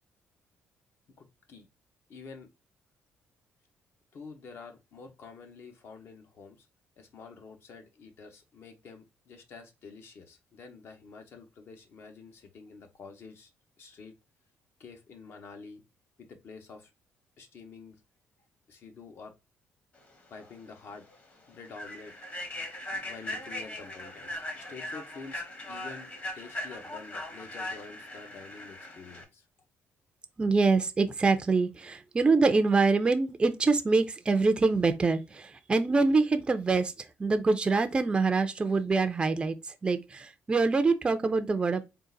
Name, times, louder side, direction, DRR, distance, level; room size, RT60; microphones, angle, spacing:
voice 1, 1.2-1.7 2.1-2.5 4.1-6.7 7.0-13.5 13.8-14.1 14.8-15.8 16.2-16.9 17.4-18.0 18.7-19.3 20.3-21.1 21.5-22.1 23.0-26.1 26.3-29.5, left 4 dB, 55° left, 0.9 m, -48 dB
Human voice / Train, 20.4-20.5 20.9-21.1 21.6-29.2, left 1 dB, 40° left, 1.3 m, -39 dB
voice 2, 30.4-39.6 39.8-41.8, right 4 dB, 20° right, 0.4 m, -25 dB
3.8 x 2.5 x 3.9 m
cardioid pair, 120°, 5 cm